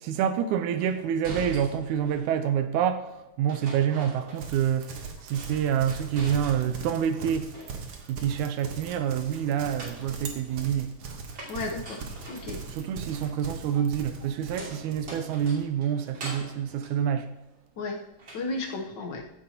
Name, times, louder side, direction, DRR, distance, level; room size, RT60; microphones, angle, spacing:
voice 1, 0.0-7.5 8.1-11.0 12.7-17.3, right 9 dB, 85° right, 9 dB, 2.0 m, -27 dB
sound 1, 0.8-2.4 3.5-4.8 5.1-6.9 7.3-8.1 9.5-17.8 18.2-18.8, right 2 dB, 40° right, 3.0 m, -44 dB
Livestock farm animals working animals, 4.3-15.5, right 4 dB, 60° right, 2.0 m, -40 dB
voice 2, 11.5-12.6 17.8-18.0 18.3-19.2, left 3 dB, 85° left, 2 dB, 0.9 m, -34 dB
15.5 x 9.2 x 2.8 m, 0.91 s
omnidirectional pair, 3.4 m